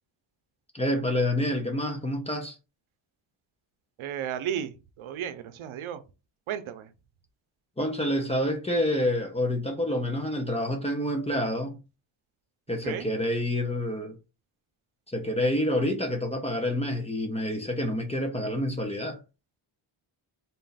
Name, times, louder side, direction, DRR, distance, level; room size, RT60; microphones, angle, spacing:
voice 1, 0.7-2.6 7.8-11.8 12.7-14.2 15.1-19.2, left 1 dB, 15° left, 0.5 m, -28 dB
voice 2, 4.0-6.0 6.5-6.9 12.7-13.1, right 9 dB, 75° right, 0.7 m, -34 dB
4.0 x 2.3 x 4.0 m
wide cardioid pair, 165°, 49 cm